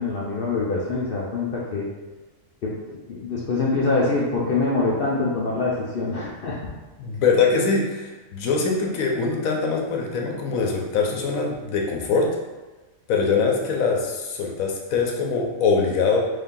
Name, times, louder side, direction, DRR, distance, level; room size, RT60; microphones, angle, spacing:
voice 1, 0.0-1.9 2.6-6.7, left 3 dB, 60° left, -4 dB, 0.6 m, -25 dB
voice 2, 7.0-12.3 13.1-16.2, left 4 dB, 80° left, 0 dB, 1.1 m, -23 dB
3.5 x 2.6 x 3.6 m, 1.2 s
omnidirectional pair, 1.4 m